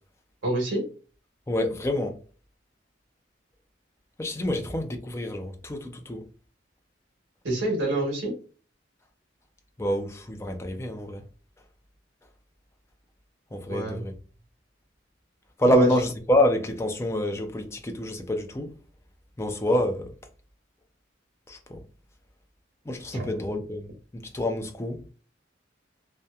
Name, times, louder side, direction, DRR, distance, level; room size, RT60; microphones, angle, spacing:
voice 1, 0.4-0.8 7.4-8.3 13.7-14.0 15.6-15.9 23.1-23.3, right 2 dB, 75° right, 1.1 m, -25 dB
voice 2, 1.5-2.2 4.2-6.2 9.8-11.2 13.5-14.1 15.6-18.7 19.4-20.1 21.5-21.8 22.9-23.9 24.1-25.0, left 1 dB, 15° left, 0.3 m, -27 dB
2.7 x 2.1 x 2.3 m
head